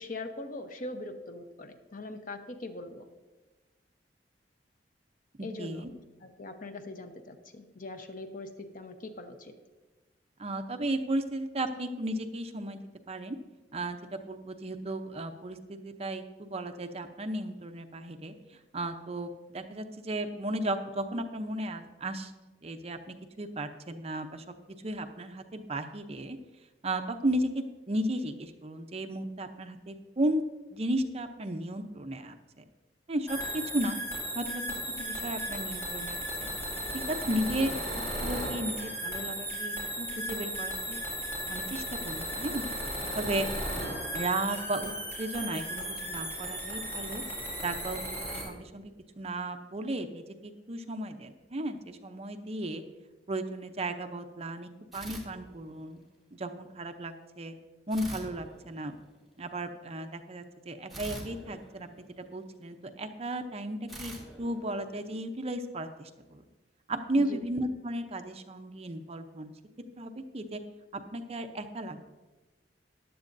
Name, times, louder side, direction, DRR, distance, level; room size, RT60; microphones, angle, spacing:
voice 1, 0.0-3.0 5.4-5.8 6.2-9.5 37.6-37.7 67.2-67.4, left 2 dB, 50° left, 7 dB, 0.9 m, -41 dB
voice 2, 5.4-5.9 10.4-12.8 13.1-13.4 13.7-22.3 22.6-24.4 24.8-26.4 26.8-30.4 30.7-32.6 33.1-34.0 34.3-34.6 35.0-36.5 36.9-37.8 38.2-41.0 41.5-42.6 43.1-43.5 43.8-44.9 45.2-47.2 47.6-52.8 53.3-56.0 56.3-57.5 57.9-58.9 59.4-61.9 62.2-66.4 66.9-69.5 70.0-70.6 71.1-72.1, right 1 dB, 35° right, 7 dB, 0.7 m, -34 dB
sound 1, 33.3-48.5, equal, 15° left, 4.0 m, -35 dB
sound 2, 54.9-56.1 57.9-59.3 60.9-62.6 63.9-65.4, right 1 dB, ahead, 2.1 m, -46 dB
14.5 x 10.5 x 2.6 m, 1.2 s
head